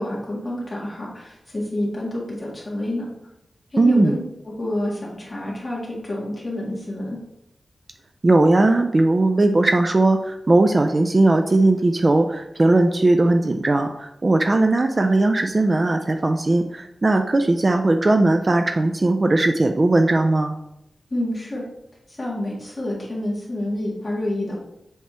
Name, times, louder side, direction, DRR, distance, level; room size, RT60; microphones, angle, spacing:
voice 1, 0.0-3.1 3.7-7.2 21.1-21.6 22.1-24.5, left 1 dB, 25° left, -5 dB, 2.1 m, -28 dB
voice 2, 3.8-4.2 8.2-20.6, right 2 dB, 30° right, 6 dB, 0.4 m, -18 dB
7.3 x 3.4 x 4.3 m, 0.85 s
wide cardioid pair, 135°, 0 cm